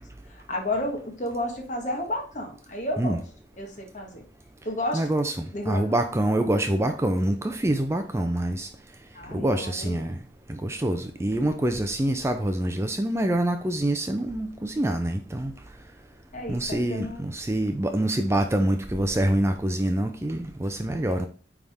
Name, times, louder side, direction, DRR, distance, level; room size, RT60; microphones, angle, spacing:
voice 1, 0.3-3.2 3.6-4.2 4.6-5.1 5.5-6.0 9.1-10.1 16.3-17.2, left 1 dB, 40° left, 2 dB, 1.5 m, -32 dB
voice 2, 4.9-8.7 9.3-10.2 10.5-15.5 16.5-21.3, right 1 dB, 15° right, 6 dB, 0.4 m, -26 dB
9.3 x 3.6 x 3.4 m, 0.41 s
head